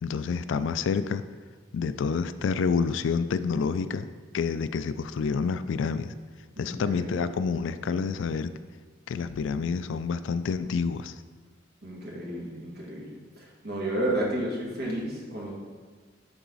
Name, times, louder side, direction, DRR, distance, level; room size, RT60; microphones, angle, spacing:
voice 1, 0.0-1.2 1.7-4.1 4.3-6.1 6.6-8.5 9.1-11.2, left 5 dB, 75° left, 12 dB, 0.3 m, -28 dB
voice 2, 6.6-7.3 11.8-15.5, right 1 dB, 55° right, -4 dB, 2.2 m, -32 dB
11.5 x 4.0 x 3.9 m, 1.5 s
head